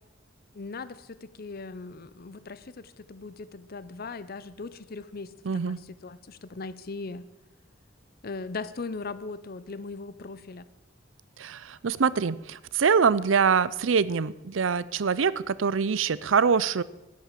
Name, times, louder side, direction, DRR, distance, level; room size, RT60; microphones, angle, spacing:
voice 1, 0.5-7.2 8.2-10.7, left 3 dB, 50° left, 16 dB, 0.7 m, -39 dB
voice 2, 5.4-5.8 11.4-16.8, right 6 dB, 85° right, 19 dB, 0.6 m, -24 dB
12.5 x 8.9 x 7.5 m, 1.0 s
head